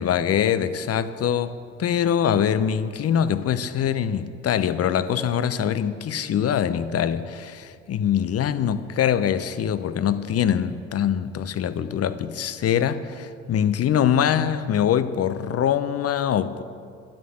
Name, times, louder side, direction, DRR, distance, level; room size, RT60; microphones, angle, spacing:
voice 1, 0.0-1.5 1.8-16.6, left 9 dB, 40° left, 0.8 m, -23 dB
12.5 x 10.5 x 7.8 m
figure-of-eight pair, 50°, 36 cm